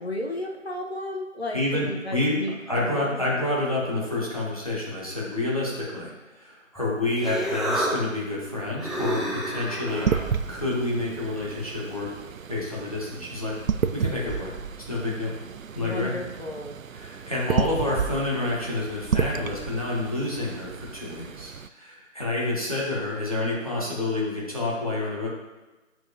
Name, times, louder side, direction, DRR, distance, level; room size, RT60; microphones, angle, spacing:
voice 1, 0.0-3.2 15.7-16.8, left 1 dB, 50° left, 0 dB, 1.2 m, -33 dB
voice 2, 1.5-2.4 2.7-12.1 12.5-13.5 13.9-14.5 14.9-15.3 15.7-16.2 16.9-25.3, left 2 dB, 25° left, -5 dB, 1.3 m, -28 dB
Human voice, 6.8-11.9, right 1 dB, ahead, 0.5 m, -32 dB
sound 1, 9.9-21.7, right 7 dB, 80° right, 0.5 m, -31 dB
10.5 x 4.5 x 2.7 m, 1.1 s
figure-of-eight pair, 180°, 40 cm